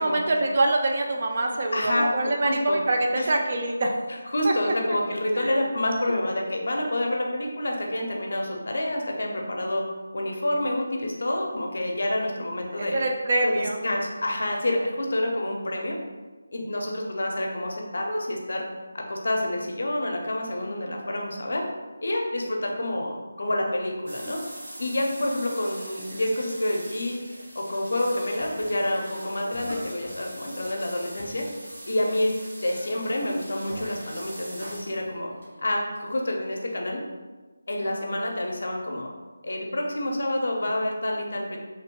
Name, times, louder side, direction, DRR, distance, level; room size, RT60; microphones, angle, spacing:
voice 1, 0.0-4.0 4.4-5.0 5.3-5.6 12.8-13.8, right 2 dB, 40° right, 1 dB, 0.3 m, -25 dB
voice 2, 1.7-2.1 2.4-2.8 3.1-3.3 4.3-9.8 10.1-13.1 13.4-16.0 16.5-18.6 18.9-21.6 22.0-24.4 24.8-27.2 27.5-31.5 31.9-32.3 32.6-35.3 35.6-37.0 37.7-39.1 39.4-41.6, left 1 dB, 65° left, 1 dB, 0.5 m, -28 dB
sound 1, 24.1-36.7, right 1 dB, 60° right, 1.0 m, -41 dB
2.9 x 2.1 x 2.9 m, 1.3 s
figure-of-eight pair, 170°, 0 cm